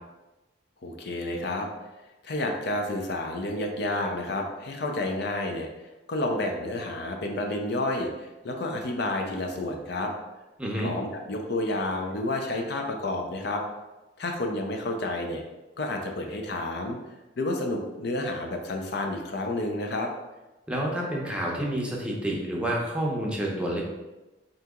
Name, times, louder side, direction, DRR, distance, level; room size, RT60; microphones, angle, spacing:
voice 1, 0.8-1.7 2.2-5.7 6.1-10.1 10.8-13.6 14.2-15.4 15.8-17.0 17.4-20.1, left 2 dB, 65° left, 2 dB, 0.5 m, -30 dB
voice 2, 10.6-10.9 20.7-23.8, right 1 dB, 5° right, -2 dB, 0.6 m, -29 dB
3.9 x 2.8 x 3.6 m, 1.1 s
head